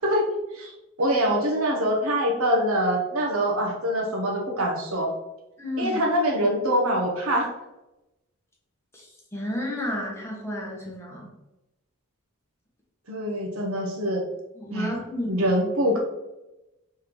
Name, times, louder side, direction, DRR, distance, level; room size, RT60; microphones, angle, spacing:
voice 1, 1.0-5.1 5.8-7.5 13.1-14.2 14.7-14.9 15.3-16.0, equal, 70° right, 0 dB, 0.9 m, -24 dB
voice 2, 5.6-6.0 8.9-9.0 9.3-11.3 14.5-15.5, left 1 dB, 10° left, -3 dB, 0.8 m, -31 dB
3.7 x 3.3 x 3.0 m, 0.97 s
head